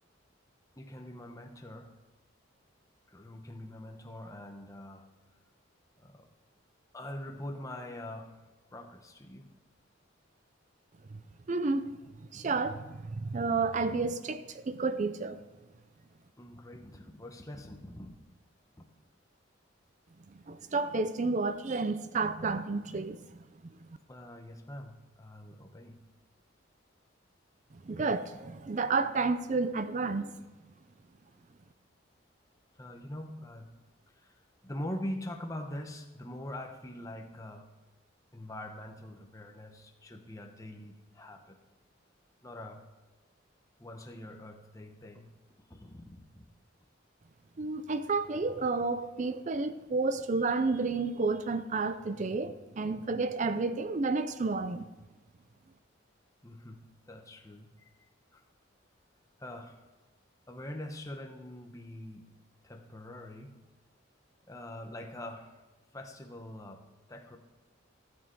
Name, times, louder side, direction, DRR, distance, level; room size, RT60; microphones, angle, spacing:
voice 1, 0.8-2.0 3.1-5.1 6.0-6.3 6.9-8.4 8.7-9.5 16.4-18.2 18.8-18.9 24.1-26.0 32.8-33.8 34.2-37.7 38.3-41.6 42.4-42.9 43.8-45.3 45.7-46.5 56.4-57.9 58.3-58.4 59.4-59.8 60.5-62.4 62.6-63.6 64.5-65.6 65.9-67.4, left 1 dB, 15° left, 0.9 m, -44 dB
voice 2, 11.5-15.4 20.3-23.2 23.6-24.0 27.7-30.3 47.6-54.9, right 3 dB, 40° right, 0.4 m, -31 dB
13.5 x 8.5 x 4.6 m
head